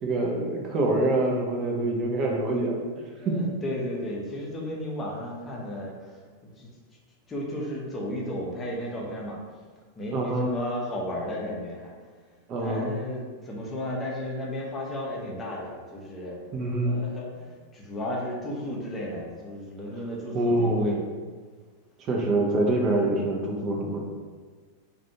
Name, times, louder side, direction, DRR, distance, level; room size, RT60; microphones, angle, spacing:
voice 1, 0.0-3.4 10.1-10.5 12.5-13.0 16.5-17.0 20.3-21.0 22.0-24.0, right 2 dB, 30° right, -1 dB, 0.5 m, -25 dB
voice 2, 3.2-6.7 7.3-9.4 10.0-11.9 12.6-16.4 16.8-21.0, left 1 dB, 20° left, -3 dB, 0.6 m, -34 dB
2.4 x 2.3 x 2.8 m, 1.5 s
figure-of-eight pair, 90°, 0 cm